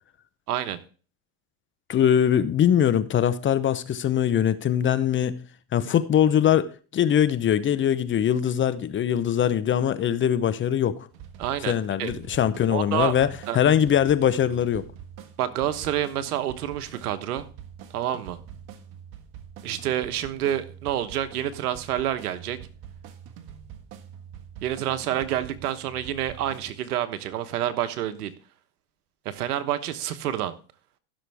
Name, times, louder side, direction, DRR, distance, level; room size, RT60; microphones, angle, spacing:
voice 1, 0.5-0.8 11.4-12.1 12.7-13.1 13.5-13.6 15.4-17.5 17.9-18.4 19.6-22.6 24.6-28.3 29.2-30.6, right 11 dB, 90° right, 1.2 m, -28 dB
voice 2, 1.9-5.4 5.7-11.0 11.7-13.3 13.5-14.8, left 9 dB, 25° left, 0.7 m, -22 dB
sound 1, 11.1-26.7, right 8 dB, 55° right, 1.6 m, -45 dB
15.5 x 6.5 x 3.5 m
supercardioid pair, 105°, 44 cm